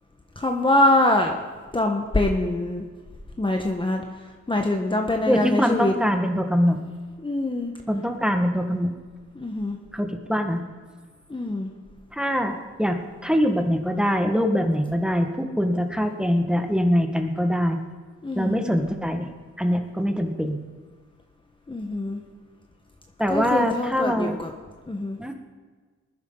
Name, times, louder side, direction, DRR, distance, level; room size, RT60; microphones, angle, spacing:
voice 1, 0.4-1.4 1.7-2.8 3.4-4.0 4.5-5.9 7.2-7.7 9.4-9.8 11.3-11.7 18.2-18.7 21.7-22.2 23.3-24.5 24.9-25.2, left 1 dB, 15° left, 2 dB, 1.4 m, -23 dB
voice 2, 5.3-6.8 7.9-8.9 9.9-10.6 12.1-17.8 18.4-19.3 19.6-20.6 23.2-24.4 25.2-25.3, equal, 5° right, 4 dB, 1.7 m, -23 dB
20.0 x 10.0 x 4.0 m, 1.4 s
supercardioid pair, 65°, 30 cm